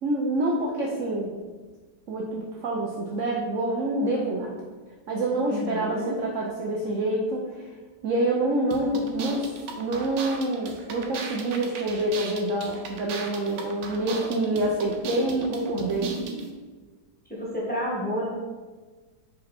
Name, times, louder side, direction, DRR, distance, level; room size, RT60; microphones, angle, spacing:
voice 1, 0.0-1.3 2.1-4.6 5.1-7.8 8.0-16.2, right 1 dB, 60° right, -1 dB, 0.9 m, -27 dB
voice 2, 5.5-6.1 17.3-18.3, equal, 5° left, -7 dB, 1.6 m, -30 dB
sound 1, 8.7-16.5, right 4 dB, 90° right, 1.5 m, -36 dB
5.4 x 5.3 x 4.2 m, 1.4 s
omnidirectional pair, 1.9 m